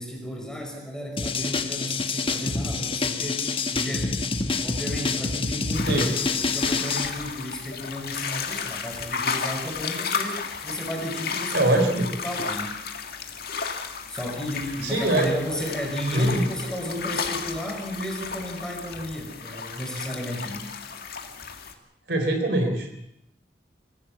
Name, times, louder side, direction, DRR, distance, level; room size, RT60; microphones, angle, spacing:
voice 1, 0.0-4.2 4.6-11.7 12.2-12.7 14.1-20.7, equal, 5° left, 1 dB, 5.2 m, -33 dB
sound 1, 1.2-7.1, left 4 dB, 30° left, 1.3 m, -27 dB
sound 2, 5.7-21.7, left 5 dB, 60° left, 2.1 m, -33 dB
voice 2, 11.5-12.1 14.8-15.6 16.1-16.4 22.1-23.1, right 1 dB, 70° right, 5 dB, 4.0 m, -23 dB
24.0 x 16.0 x 7.3 m, 0.80 s
head